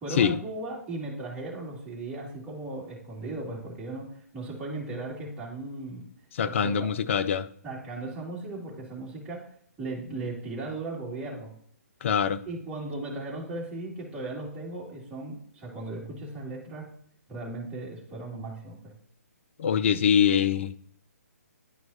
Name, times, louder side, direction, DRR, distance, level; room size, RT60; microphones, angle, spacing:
voice 1, 0.0-6.0 6.4-6.9 7.6-9.5 9.8-11.5 12.5-16.9 17.3-18.9, right 2 dB, 10° right, 2.2 m, -37 dB
voice 2, 6.3-7.5 12.0-12.4 19.6-20.7, left 8 dB, 50° left, 0.5 m, -23 dB
11.0 x 4.5 x 2.7 m
figure-of-eight pair, 135°, 9 cm